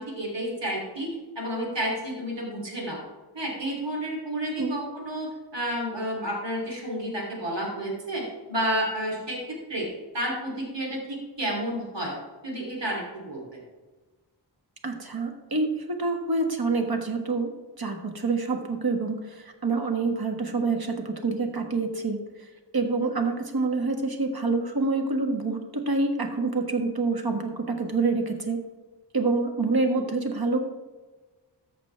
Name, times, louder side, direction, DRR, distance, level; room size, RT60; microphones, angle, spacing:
voice 1, 0.0-3.0 3.3-8.2 8.5-9.9 10.1-12.1 12.4-13.6, right 1 dB, 75° right, -2 dB, 3.0 m, -31 dB
voice 2, 14.8-17.5 17.8-22.2 22.7-28.6 29.1-30.6, right 3 dB, 55° right, 4 dB, 1.4 m, -27 dB
14.0 x 6.1 x 3.3 m, 1.3 s
wide cardioid pair, 75°, 43 cm